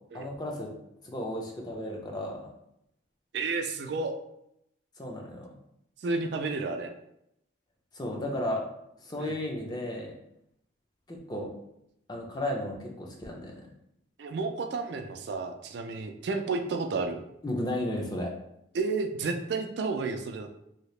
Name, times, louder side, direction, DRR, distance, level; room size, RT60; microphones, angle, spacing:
voice 1, 0.1-0.7 1.0-2.3 5.0-5.5 7.9-8.6 9.0-10.1 11.1-11.5 12.1-13.7 17.4-18.3, left 1 dB, 20° left, -1 dB, 0.5 m, -34 dB
voice 2, 3.3-4.1 6.0-6.9 9.2-9.4 14.2-17.2 18.7-20.5, right 4 dB, 60° right, 6 dB, 0.3 m, -31 dB
2.8 x 2.7 x 3.1 m, 0.80 s
head